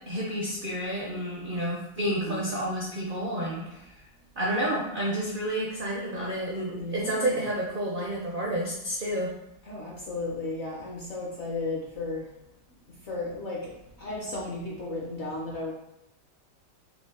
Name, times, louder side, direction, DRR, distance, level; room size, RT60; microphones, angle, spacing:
voice 1, 0.1-3.9 4.4-9.3, right 1 dB, 70° right, -4 dB, 0.5 m, -30 dB
voice 2, 2.0-2.6 6.7-7.4 9.6-12.3 13.0-13.7 14.0-15.7, left 2 dB, 55° left, -3 dB, 0.8 m, -34 dB
4.8 x 2.3 x 3.7 m, 0.86 s
omnidirectional pair, 1.9 m